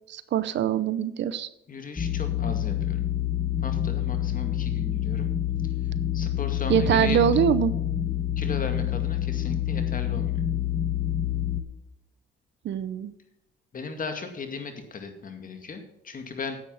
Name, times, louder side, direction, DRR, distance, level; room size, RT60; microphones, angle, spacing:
voice 1, 0.1-1.5 6.7-7.7 12.6-13.1, right 9 dB, 65° right, 14 dB, 0.8 m, -23 dB
voice 2, 1.7-3.0 3.6-5.3 5.6-5.7 6.1-7.2 8.4-10.4 13.7-16.6, left 4 dB, 45° left, 6 dB, 2.2 m, -36 dB
sound 1, 2.0-11.6, left 11 dB, 25° left, 1.4 m, -27 dB
10.5 x 8.5 x 5.7 m, 0.85 s
cardioid pair, 90°, 20 cm